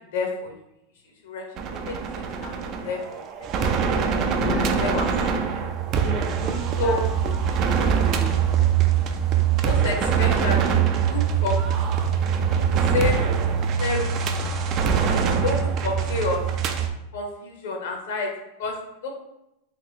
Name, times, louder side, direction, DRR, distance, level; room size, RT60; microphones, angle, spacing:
voice 1, 0.1-0.5 1.2-1.5 1.8-2.0 2.4-2.5 2.8-3.0 3.4-3.5 4.8-5.3 6.8-7.0 9.6-10.6 11.0-11.9 12.9-13.2 13.8-14.1 15.4-16.4 17.1-18.3 18.6-18.7 19.0-19.1, left 3 dB, 80° left, 1 dB, 0.9 m, -28 dB
sound 1, 1.6-16.9, right 7 dB, 40° right, 0.4 m, -23 dB
voice 2, 4.1-5.0 5.3-5.5 6.0-7.0 7.6-8.6, left 2 dB, 25° left, 1 dB, 0.5 m, -34 dB
2.8 x 2.5 x 3.9 m, 0.86 s
supercardioid pair, 130°, 0 cm